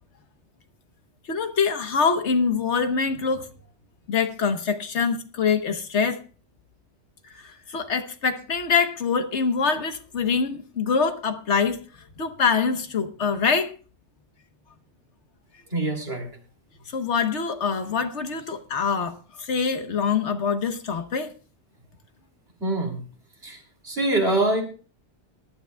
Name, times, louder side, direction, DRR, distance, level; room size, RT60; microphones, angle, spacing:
voice 1, 1.3-3.5 4.1-6.2 7.3-11.8 12.2-13.7 16.9-21.3, left 5 dB, 80° left, 1.4 m, -24 dB
voice 2, 15.7-16.3 22.6-23.0 23.4-24.6, right 2 dB, 60° right, 3.4 m, -24 dB
20.5 x 12.0 x 2.3 m
omnidirectional pair, 1.2 m